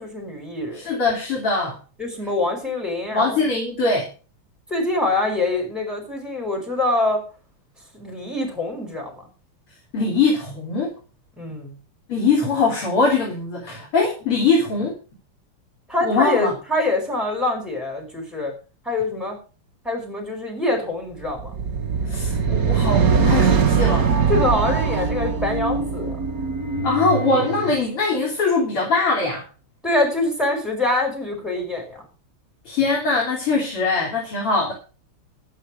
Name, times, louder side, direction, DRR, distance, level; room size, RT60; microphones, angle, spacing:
voice 1, 0.0-0.8 2.0-3.5 4.7-7.2 7.9-9.3 11.4-11.7 15.9-18.5 18.9-19.4 19.8-21.5 24.3-26.2 29.8-32.1, left 2 dB, ahead, 0 dB, 5.5 m, -24 dB
voice 2, 0.7-1.8 3.1-4.1 9.9-10.9 12.1-14.9 16.0-16.5 22.0-24.3 26.8-29.4 32.7-34.7, left 3 dB, 80° left, -2 dB, 4.3 m, -22 dB
sound 1, 21.3-27.8, right 5 dB, 45° right, 1.7 m, -21 dB
12.0 x 9.8 x 6.4 m, 0.36 s
omnidirectional pair, 2.4 m